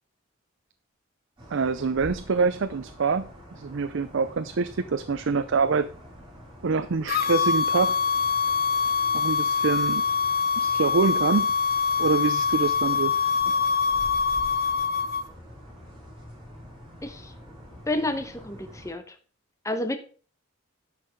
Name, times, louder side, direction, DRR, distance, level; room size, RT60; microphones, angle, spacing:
sound 1, 1.4-18.9, equal, 25° right, 5.3 m, -46 dB
voice 1, 1.5-3.2 3.6-5.9 6.6-8.0 9.1-10.0 10.6-11.5 12.0-13.2, right 4 dB, 65° right, 11 dB, 0.5 m, -25 dB
sound 2, 7.1-15.2, left 5 dB, 50° left, 1.0 m, -24 dB
voice 2, 17.0-17.3 17.9-19.2 19.6-20.0, left 1 dB, 15° left, 7 dB, 0.9 m, -30 dB
11.0 x 5.7 x 5.1 m, 0.40 s
head